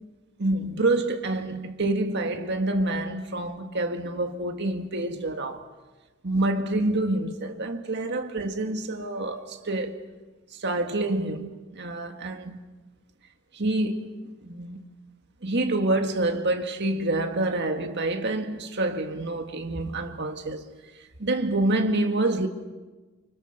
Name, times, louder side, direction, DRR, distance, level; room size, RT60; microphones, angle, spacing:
voice 1, 0.4-5.7 6.2-10.0 10.5-12.6 13.5-14.9 15.4-20.7 21.2-22.5, right 2 dB, 55° right, 1.9 m, -27 dB
30.0 x 25.5 x 6.7 m
head